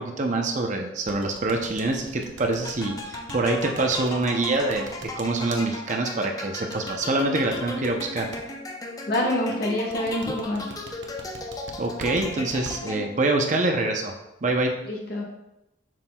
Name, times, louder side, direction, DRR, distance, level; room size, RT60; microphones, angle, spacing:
voice 1, 0.0-8.3 11.8-14.1 14.4-14.7, right 2 dB, 40° right, 2 dB, 0.6 m, -25 dB
sound 1, 1.1-5.6 6.7-8.4 9.9-12.7, right 3 dB, 75° right, 0.9 m, -41 dB
sound 2, 2.6-13.3, left 2 dB, 20° left, 0.5 m, -36 dB
voice 2, 9.1-10.7 14.9-15.2, left 1 dB, 55° left, -1 dB, 1.4 m, -26 dB
7.4 x 6.1 x 2.3 m, 0.92 s
head